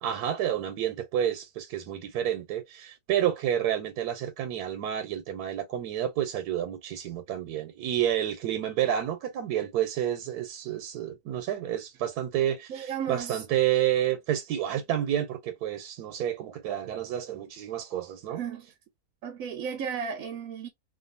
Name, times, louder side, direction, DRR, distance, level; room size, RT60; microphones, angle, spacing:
voice 1, 0.0-18.4, right 11 dB, 90° right, 1.2 m, -29 dB
voice 2, 12.7-13.4 18.3-18.7 19.2-20.7, right 7 dB, 70° right, 1.0 m, -34 dB
2.6 x 2.4 x 2.5 m
omnidirectional pair, 1.6 m